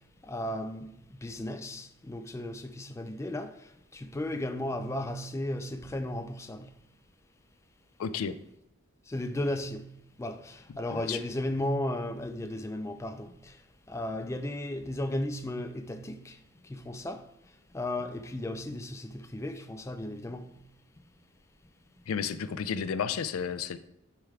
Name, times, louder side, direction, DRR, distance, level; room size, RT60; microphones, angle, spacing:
voice 1, 0.3-3.5 3.9-6.7 9.1-9.9 10.2-13.5 13.9-16.4 16.7-17.2 17.7-20.5, left 1 dB, 15° left, 0.3 m, -35 dB
voice 2, 8.0-8.4 10.9-11.2 22.1-23.8, left 7 dB, 90° left, 0.4 m, -32 dB
9.7 x 3.4 x 3.6 m
head